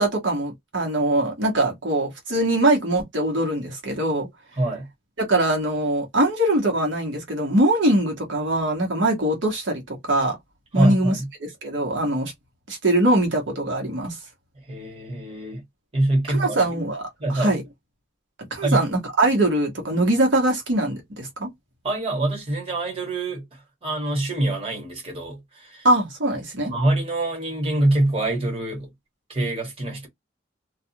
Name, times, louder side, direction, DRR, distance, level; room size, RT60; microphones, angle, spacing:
voice 1, 0.0-4.3 5.2-10.4 10.7-11.1 11.4-12.3 12.7-14.2 16.3-17.0 17.3-17.6 18.5-21.5 25.8-26.7, right 1 dB, 90° right, 1.1 m, -22 dB
voice 2, 4.6-4.9 10.7-11.3 14.7-15.6 15.9-16.7 17.2-17.5 18.6-18.8 21.8-25.9 26.7-28.9 29.3-30.1, right 1 dB, 30° right, 1.3 m, -25 dB
2.4 x 2.4 x 2.7 m
head